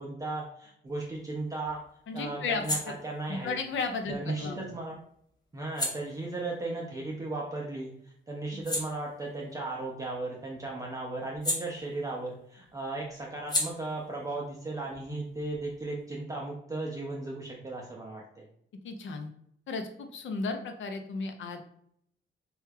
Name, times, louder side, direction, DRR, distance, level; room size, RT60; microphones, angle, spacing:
voice 1, 0.0-1.8 2.1-3.6 4.1-5.0 5.5-18.4, right 2 dB, 15° right, -3 dB, 0.4 m, -36 dB
sound 1, 0.9-7.7 8.1-12.4 12.6-16.0, left 1 dB, 20° left, 0.7 m, -39 dB
voice 2, 2.1-2.9 3.3-4.6 8.5-8.6 18.8-19.3 19.7-21.6, left 4 dB, 80° left, 6 dB, 0.5 m, -34 dB
3.2 x 2.3 x 3.3 m, 0.69 s
wide cardioid pair, 145°, 20 cm